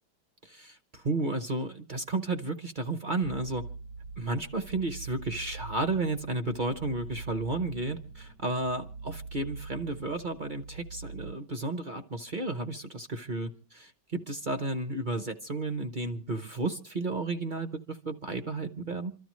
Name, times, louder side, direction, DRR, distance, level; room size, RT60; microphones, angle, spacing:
voice 1, 0.4-3.6 4.2-19.1, right 2 dB, 45° right, 8 dB, 0.6 m, -33 dB
sound 1, 3.2-11.3, right 4 dB, 65° right, 1.5 m, -43 dB
27.5 x 12.5 x 3.1 m, 0.37 s
omnidirectional pair, 1.8 m